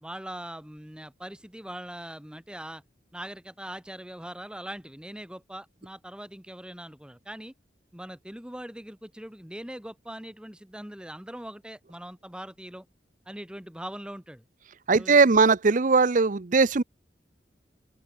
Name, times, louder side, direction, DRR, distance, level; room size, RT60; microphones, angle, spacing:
voice 1, 0.0-2.8 3.1-7.5 7.9-12.9 13.3-14.4 15.0-15.3, right 1 dB, 5° right, 1.5 m, -41 dB
voice 2, 14.9-16.8, right 4 dB, 45° right, 0.7 m, -20 dB
open air
head